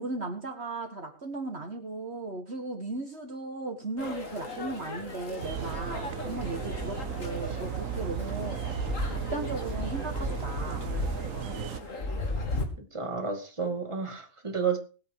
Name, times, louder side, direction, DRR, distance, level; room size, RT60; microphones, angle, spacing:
voice 1, 0.0-8.8 9.1-11.0, right 2 dB, 55° right, 2.1 m, -37 dB
sound 1, 4.0-12.7, left 2 dB, 75° left, 3.0 m, -36 dB
sound 2, 5.4-11.8, right 10 dB, 90° right, 1.3 m, -35 dB
voice 2, 12.8-14.8, right 5 dB, 20° right, 2.5 m, -32 dB
20.5 x 8.0 x 4.9 m
omnidirectional pair, 1.4 m